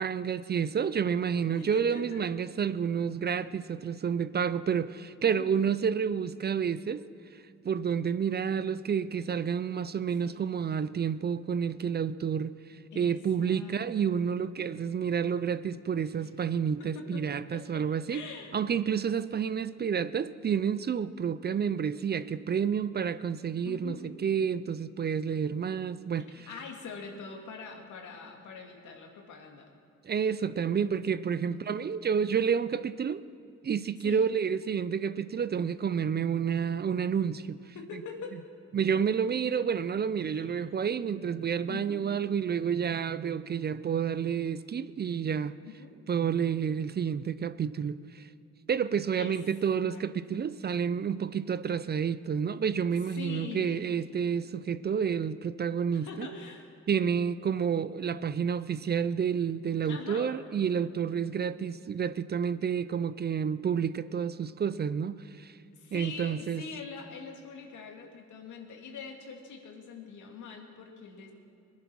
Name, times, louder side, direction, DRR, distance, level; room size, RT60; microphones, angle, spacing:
voice 1, 0.0-7.0 7.3-18.2 18.5-24.0 24.2-26.5 30.0-33.2 33.6-37.6 38.7-45.5 46.1-48.3 48.7-56.3 56.9-65.6 65.9-66.6, right 7 dB, 35° right, 0.5 m, -30 dB
voice 2, 1.5-2.2 5.3-5.6 10.2-10.4 12.9-14.2 16.2-16.3 16.8-18.6 19.3-19.5 23.6-24.1 26.5-29.7 31.5-31.9 34.0-34.3 37.7-38.4 40.3-40.6 41.7-42.1 45.6-46.0 49.2-49.4 49.8-50.0 50.3-50.4 53.0-53.8 55.9-56.7 59.8-60.3 65.7-71.3, left 5 dB, 75° left, 2.3 m, -44 dB
21.0 x 10.5 x 6.1 m
cardioid pair, 90°, 30 cm